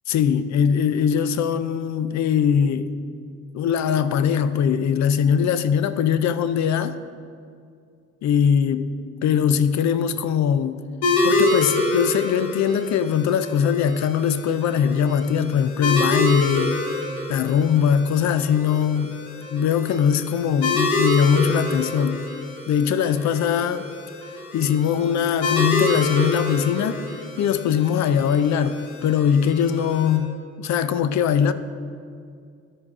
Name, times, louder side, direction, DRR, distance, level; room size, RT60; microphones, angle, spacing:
voice 1, 0.1-2.9 3.5-7.0 8.2-8.9 9.2-10.8 11.2-16.8 17.3-19.2 19.5-22.3 22.7-23.9 24.5-27.0 27.4-31.5, left 8 dB, 65° left, 0.5 m, -21 dB
sound 1, 11.0-30.2, left 2 dB, 90° left, 1.2 m, -27 dB
13.0 x 5.1 x 3.6 m
cardioid pair, 90°, 30 cm